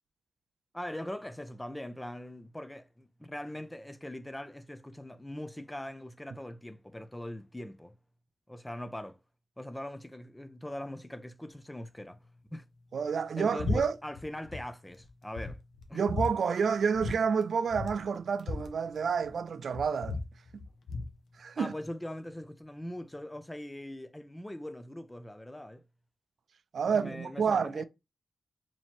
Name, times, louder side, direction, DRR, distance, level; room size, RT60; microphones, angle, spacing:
voice 1, 0.7-7.9 8.5-9.2 9.6-12.2 12.5-12.6 13.4-15.6 15.9-16.0 21.6-25.8 26.9-27.8, left 1 dB, 10° left, 0.4 m, -41 dB
voice 2, 12.9-14.0 15.9-20.2 21.4-21.7 26.7-27.8, right 6 dB, 65° right, 0.4 m, -29 dB
sound 1, 13.6-13.8 14.1-14.6 15.0-15.1 15.4-16.3 16.9-17.2 17.4-17.5 17.7-19.4 19.7-21.1, left 3 dB, 85° left, 0.6 m, -35 dB
2.9 x 2.9 x 4.3 m
wide cardioid pair, 150°, 0 cm